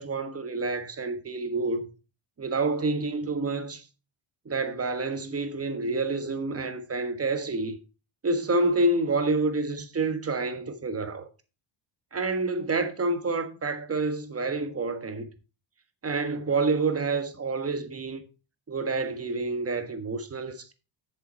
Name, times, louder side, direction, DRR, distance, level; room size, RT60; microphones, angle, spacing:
voice 1, 0.0-1.9 2.4-3.8 4.4-7.8 8.2-11.3 12.1-15.3 16.0-18.2 18.7-20.7, right 3 dB, 30° right, 1.5 m, -28 dB
7.7 x 6.9 x 4.3 m
cardioid pair, 100°, 50 cm